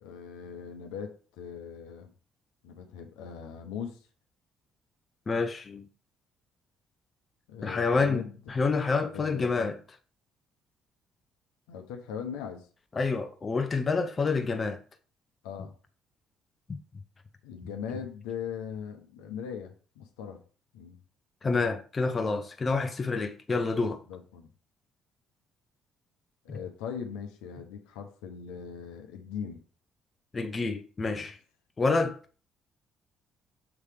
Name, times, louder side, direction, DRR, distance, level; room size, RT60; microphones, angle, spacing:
voice 1, 0.0-2.1 2.6-4.0 7.5-8.3 9.1-9.7 11.7-12.7 15.4-15.7 17.4-20.4 20.7-21.0 24.1-24.5 26.4-29.6, left 7 dB, 85° left, 1.1 m, -40 dB
voice 2, 5.3-5.9 7.6-9.8 12.9-14.8 21.4-24.0 26.5-26.6 30.3-31.4 31.8-32.2, left 4 dB, 35° left, 0.9 m, -28 dB
7.2 x 3.4 x 4.9 m
hypercardioid pair, 55°, 0 cm